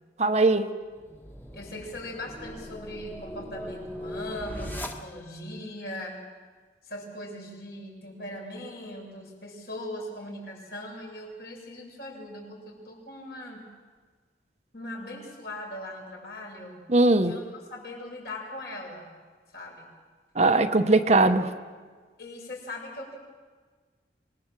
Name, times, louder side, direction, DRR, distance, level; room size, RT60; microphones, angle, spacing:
voice 1, 0.2-0.7 16.9-17.3 20.4-21.5, right 2 dB, 40° right, 8 dB, 0.9 m, -20 dB
sound 1, 0.9-5.5, left 1 dB, 10° left, 1.5 m, -39 dB
voice 2, 1.5-6.3 6.8-13.7 14.7-16.8 17.2-19.1 19.5-19.9 20.9-21.4 22.2-23.2, left 1 dB, 65° left, 0 dB, 6.8 m, -40 dB
26.5 x 19.5 x 7.4 m, 1.5 s
head